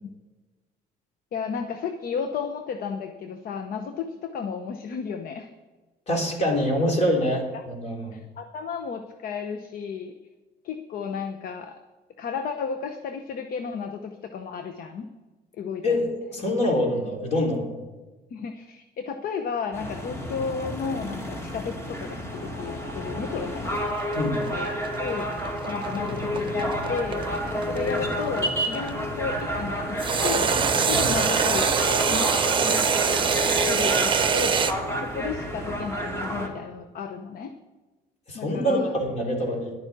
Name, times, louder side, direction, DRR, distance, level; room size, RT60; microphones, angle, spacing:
voice 1, 1.3-5.5 7.5-7.6 8.1-10.1 10.6-11.8 12.2-15.1 15.6-16.1 18.3-23.8 24.4-24.7 25.0-33.2 33.6-34.6 35.0-37.5 38.3-39.0, left 6 dB, 60° left, 7 dB, 0.9 m, -33 dB
voice 2, 6.1-8.2 15.8-17.8 24.2-24.4 30.9-31.0 38.3-39.7, left 1 dB, 40° left, 0 dB, 3.3 m, -25 dB
sound 1, 19.7-36.5, equal, 15° left, 2.2 m, -30 dB
sound 2, 23.7-28.9 30.0-34.7, right 6 dB, 30° right, 0.9 m, -24 dB
11.5 x 9.1 x 6.1 m, 1.2 s
cardioid pair, 110°, 17 cm